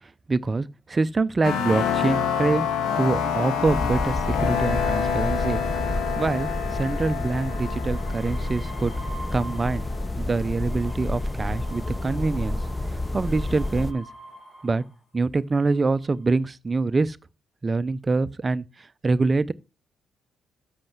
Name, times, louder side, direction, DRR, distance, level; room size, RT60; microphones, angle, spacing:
voice 1, 0.3-2.7 3.0-5.6 6.2-8.9 9.3-9.8 10.2-12.6 13.1-14.1 14.6-14.8 15.1-17.2 17.6-19.5, right 3 dB, 30° right, 0.5 m, -25 dB
sound 1, 1.4-10.1, left 7 dB, 85° left, 1.5 m, -28 dB
sound 2, 3.6-13.9, left 1 dB, 10° left, 0.7 m, -30 dB
sound 3, 7.5-10.0 10.4-14.9 15.7-16.2, right 1 dB, 30° left, 5.1 m, -45 dB
7.7 x 6.5 x 5.9 m
cardioid pair, 90°, 0 cm